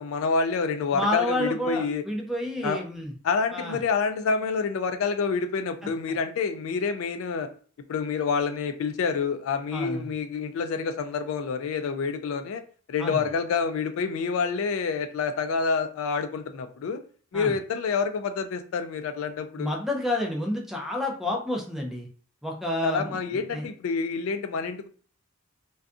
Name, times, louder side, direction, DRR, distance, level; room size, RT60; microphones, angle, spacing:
voice 1, 0.0-2.0 2.6-2.8 3.2-7.5 7.9-12.6 12.9-17.0 17.3-19.7 22.8-24.9, left 5 dB, 70° left, 8 dB, 0.3 m, -28 dB
voice 2, 0.9-3.1 3.5-3.8 9.7-10.1 13.0-13.2 17.3-17.5 19.6-22.1 22.4-23.7, left 1 dB, ahead, 0 dB, 0.4 m, -29 dB
2.5 x 2.2 x 2.4 m, 0.42 s
head